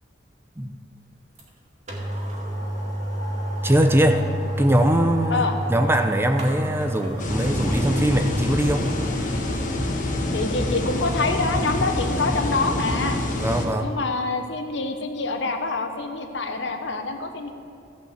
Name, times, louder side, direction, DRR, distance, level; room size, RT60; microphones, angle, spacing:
sound 1, 1.4-1.5 1.9-9.1 9.5-9.6, right 1 dB, 40° right, 2.2 m, -30 dB
voice 1, 3.6-4.3 4.6-8.9 13.4-13.9, right 1 dB, 15° right, 6 dB, 0.6 m, -21 dB
sound 2, 7.2-13.7, left 1 dB, 45° left, 1.3 m, -26 dB
voice 2, 10.3-13.2 13.8-17.5, left 3 dB, 70° left, 6 dB, 1.0 m, -26 dB
14.5 x 5.5 x 7.9 m, 2.4 s
head